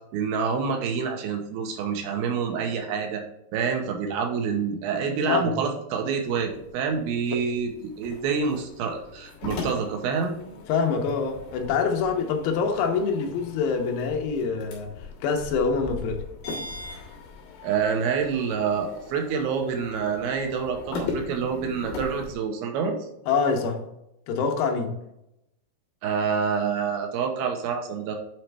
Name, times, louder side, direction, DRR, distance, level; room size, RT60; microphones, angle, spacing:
voice 1, 0.1-3.2 3.5-10.3 17.6-23.0 26.0-28.2, right 6 dB, 80° right, 3 dB, 2.6 m, -27 dB
sound 1, 6.2-22.3, left 4 dB, 65° left, 3.0 m, -40 dB
voice 2, 10.7-14.9 15.2-16.2 23.3-23.8 24.3-24.9, left 5 dB, 80° left, 3 dB, 2.8 m, -25 dB
8.9 x 4.2 x 3.3 m, 0.85 s
omnidirectional pair, 4.4 m